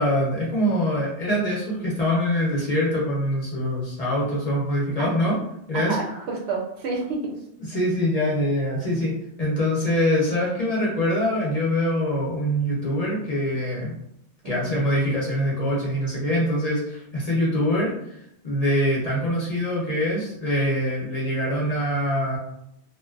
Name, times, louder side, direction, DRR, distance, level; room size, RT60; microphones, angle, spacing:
voice 1, 0.0-5.4 5.7-6.1 7.6-9.1 9.4-13.9 14.4-22.4, equal, 40° left, -6 dB, 0.7 m, -24 dB
voice 2, 5.7-7.3 14.4-14.8, right 3 dB, 75° right, 0 dB, 0.8 m, -29 dB
2.5 x 2.3 x 2.3 m, 0.76 s
omnidirectional pair, 1.1 m